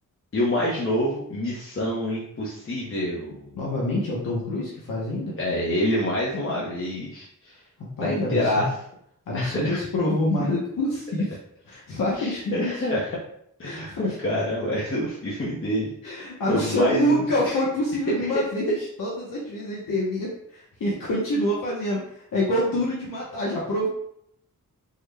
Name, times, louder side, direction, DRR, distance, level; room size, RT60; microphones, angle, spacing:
voice 1, 0.3-3.5 5.4-7.5 8.0-8.7 9.3-9.8 12.2-13.1 13.6-17.5, left 1 dB, 40° left, -5 dB, 0.7 m, -27 dB
voice 2, 3.5-5.3 8.0-8.5 9.3-11.4 11.7-12.9 13.6-14.2 16.0-23.9, left 1 dB, 85° left, -5 dB, 0.8 m, -26 dB
3.8 x 2.1 x 3.2 m, 0.70 s
wide cardioid pair, 120°, 32 cm